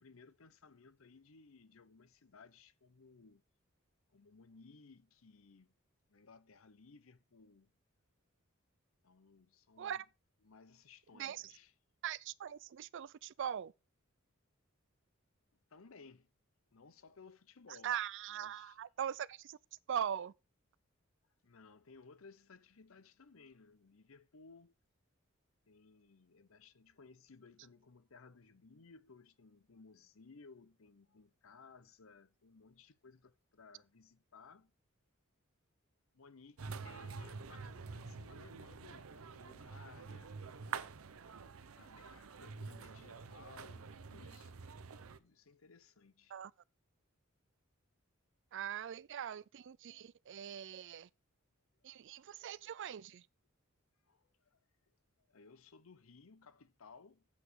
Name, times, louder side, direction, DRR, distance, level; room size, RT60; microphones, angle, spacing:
voice 1, 0.0-3.4 4.1-5.7 6.1-7.7 9.0-10.0 10.4-11.7 15.7-16.3 16.7-18.0 18.3-18.8 21.4-24.8 25.7-34.7 36.1-40.4 41.7-44.5 45.2-46.4 52.1-52.3 54.0-57.3, left 4 dB, 70° left, 0.8 m, -60 dB
voice 2, 12.0-13.7 17.8-19.6 19.9-20.3 46.3-46.5 48.5-51.1 51.8-53.2, right 9 dB, 60° right, 0.4 m, -41 dB
sound 1, 36.6-45.2, right 5 dB, 90° right, 0.7 m, -47 dB
8.4 x 5.1 x 6.3 m
head